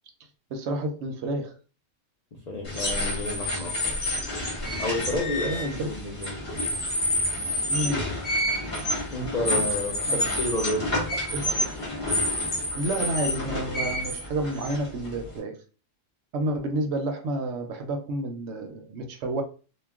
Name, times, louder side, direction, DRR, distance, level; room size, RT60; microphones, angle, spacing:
voice 1, 0.5-1.6 5.4-5.9 7.7-8.1 10.0-10.2 11.3-11.4 12.7-15.6 16.3-19.4, right 1 dB, 65° right, 4 dB, 0.8 m, -30 dB
voice 2, 2.5-3.8 4.8-6.4 9.1-10.9, left 1 dB, 60° left, -2 dB, 0.4 m, -30 dB
sound 1, 2.6-15.4, left 1 dB, 30° left, 0.9 m, -29 dB
2.2 x 2.1 x 3.5 m, 0.36 s
omnidirectional pair, 1.4 m